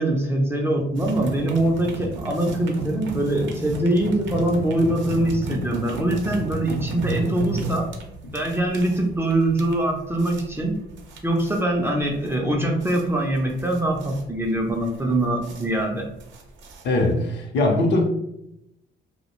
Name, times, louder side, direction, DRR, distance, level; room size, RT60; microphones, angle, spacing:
voice 1, 0.0-7.9 8.3-10.8 11.2-16.1, right 1 dB, 10° right, 0 dB, 0.4 m, -23 dB
sound 1, 1.0-17.3, right 2 dB, 70° right, 0.5 m, -33 dB
voice 2, 16.8-18.0, left 2 dB, 65° left, 1 dB, 0.6 m, -21 dB
2.2 x 2.0 x 2.9 m, 0.82 s
cardioid pair, 90°, 20 cm